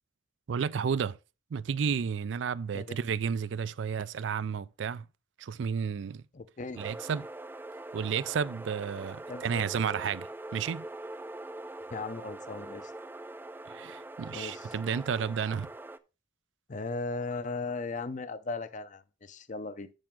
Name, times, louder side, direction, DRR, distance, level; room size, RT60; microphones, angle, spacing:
voice 1, 0.5-1.2 1.5-5.1 5.4-6.2 6.8-7.3 7.9-10.8 13.7-15.7, right 6 dB, 80° right, 0.4 m, -32 dB
voice 2, 6.3-6.8 9.3-9.6 11.9-12.9 14.3-14.7 16.7-19.9, left 3 dB, 45° left, 0.6 m, -37 dB
sound 1, 6.8-16.0, right 2 dB, 10° right, 0.4 m, -43 dB
9.0 x 6.1 x 3.8 m
head